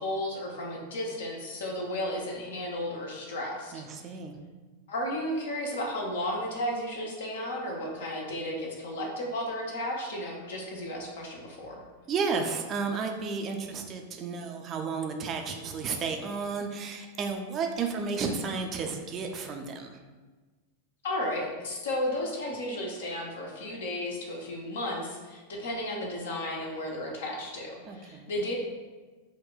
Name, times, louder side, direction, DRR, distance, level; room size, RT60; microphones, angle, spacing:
voice 1, 0.0-4.2 4.9-11.7 21.0-28.6, left 1 dB, 60° left, 0 dB, 0.6 m, -34 dB
voice 2, 3.7-4.3 12.1-20.0 27.9-28.3, right 5 dB, 30° right, 3 dB, 0.4 m, -32 dB
4.8 x 2.1 x 2.3 m, 1.3 s
figure-of-eight pair, 90°, 0 cm